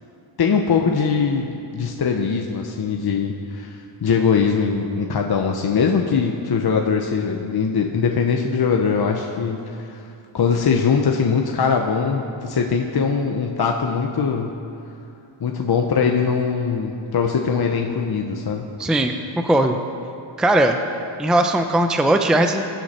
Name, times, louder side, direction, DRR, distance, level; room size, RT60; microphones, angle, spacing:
voice 1, 0.4-10.0 10.3-14.5 15.4-18.7, left 5 dB, 50° left, 2 dB, 0.9 m, -21 dB
voice 2, 18.8-19.8 20.4-20.8 21.2-22.6, right 1 dB, ahead, 5 dB, 0.5 m, -18 dB
23.5 x 8.2 x 4.3 m, 2.6 s
wide cardioid pair, 130°, 48 cm